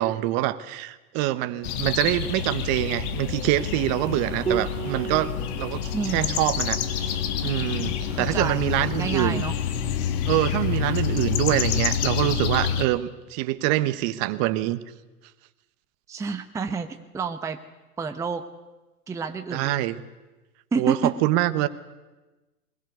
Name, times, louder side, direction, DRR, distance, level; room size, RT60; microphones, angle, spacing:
voice 1, 0.0-9.4 10.2-14.8 19.5-20.0 20.8-21.7, right 15 dB, 35° right, 13 dB, 1.2 m, -25 dB
sound 1, 1.6-12.9, left 8 dB, 45° left, 2.1 m, -28 dB
Piano, 4.5-13.8, right 6 dB, 85° right, 2.5 m, -38 dB
voice 2, 5.9-6.4 8.1-9.5 16.1-17.6 18.0-18.4 19.1-19.9 20.7-21.2, right 5 dB, 5° right, 8 dB, 0.8 m, -29 dB
21.5 x 20.5 x 8.2 m, 1.1 s
figure-of-eight pair, 105°, 46 cm